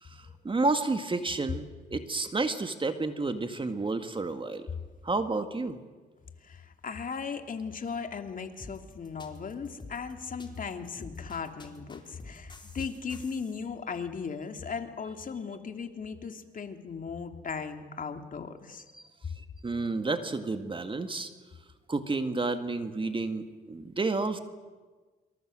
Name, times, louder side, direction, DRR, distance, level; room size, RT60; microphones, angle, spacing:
voice 1, 0.0-4.7 5.0-5.8 18.9-19.0 19.6-21.3 21.9-24.4, right 3 dB, 25° right, 8 dB, 2.0 m, -30 dB
voice 2, 6.4-18.8, left 5 dB, 45° left, 6 dB, 2.8 m, -37 dB
sound 1, 8.6-13.6, left 3 dB, 25° left, 4.4 m, -49 dB
27.0 x 25.0 x 7.8 m, 1.3 s
cardioid pair, 90°, 20 cm